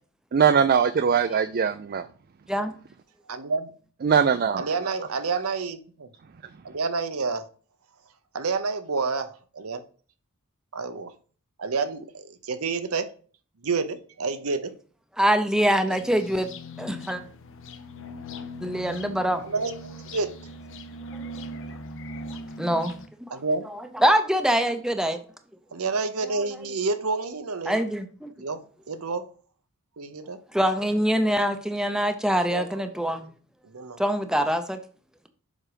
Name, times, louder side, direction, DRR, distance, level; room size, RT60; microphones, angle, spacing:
voice 1, 0.3-2.0 4.0-4.6, right 7 dB, 45° right, 11 dB, 0.4 m, -21 dB
voice 2, 3.3-3.7 4.6-6.1 6.6-7.5 8.3-9.8 10.7-11.1 11.6-13.1 13.6-14.7 15.8-16.0 19.3-20.3 23.3-23.7 25.7-27.8 28.4-29.3 30.0-30.4 32.5-32.8 33.6-34.0, right 4 dB, 75° right, 10 dB, 0.8 m, -29 dB
voice 3, 15.2-16.5 16.8-17.2 18.6-19.4 22.6-22.9 23.2-23.3 24.0-25.2 27.7-28.3 30.5-33.3 34.0-34.8, equal, 5° right, 7 dB, 0.6 m, -24 dB
sound 1, 16.0-23.1, equal, 60° left, 0.7 m, -40 dB
7.4 x 5.1 x 4.9 m, 0.42 s
head